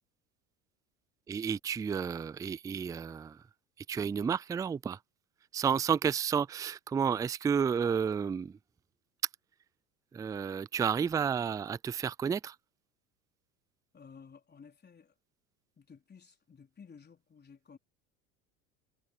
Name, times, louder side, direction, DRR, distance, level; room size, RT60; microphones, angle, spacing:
voice 1, 1.3-3.4 3.9-5.0 5.5-8.6 10.1-12.6, right 7 dB, 10° right, 0.3 m, -31 dB
voice 2, 13.9-15.1 15.8-17.8, left 6 dB, 25° left, 4.0 m, -54 dB
hypercardioid pair, 80°, 40 cm